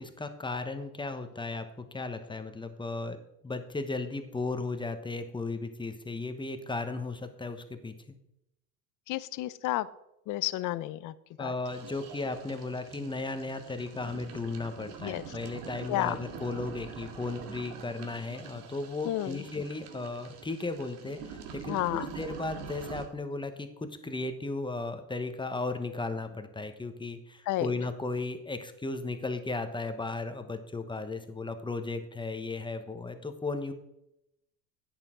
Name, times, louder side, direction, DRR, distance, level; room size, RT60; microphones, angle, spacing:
voice 1, 0.0-3.2 3.4-8.1 11.4-33.7, left 3 dB, 10° left, 8 dB, 1.1 m, -35 dB
voice 2, 9.1-9.9 10.3-11.5 15.0-15.2 15.9-16.2 19.0-19.4 21.7-22.1 27.5-27.7, left 15 dB, 40° left, 17 dB, 0.6 m, -31 dB
sound 1, 11.7-23.1, right 6 dB, 70° right, 1.9 m, -45 dB
11.0 x 8.8 x 3.7 m, 0.85 s
hypercardioid pair, 95°, 49 cm